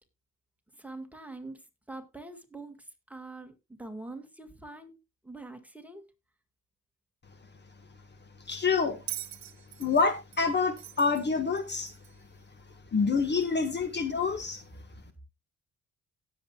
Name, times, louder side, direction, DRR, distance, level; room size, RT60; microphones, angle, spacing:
voice 1, 0.7-1.6 1.9-3.5 3.8-4.9 5.2-6.0, right 2 dB, 5° right, 1.8 m, -44 dB
voice 2, 8.5-9.0 9.8-11.9 12.9-14.6, left 4 dB, 35° left, 1.3 m, -27 dB
Bell, 9.1-12.3 13.4-13.5, right 13 dB, 65° right, 0.8 m, -43 dB
17.5 x 7.4 x 2.3 m
cardioid pair, 90°, 30 cm